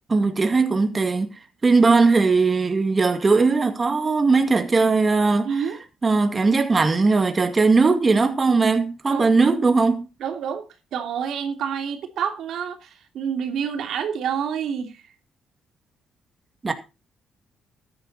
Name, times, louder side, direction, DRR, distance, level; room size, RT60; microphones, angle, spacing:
voice 1, 0.1-1.3 1.6-5.6 6.0-10.1 16.6-16.7, right 4 dB, 30° right, 2.2 m, -19 dB
voice 2, 5.4-5.8 9.1-9.2 10.2-15.0, right 7 dB, 75° right, 2.8 m, -28 dB
13.5 x 11.0 x 4.1 m
cardioid pair, 90°, 0 cm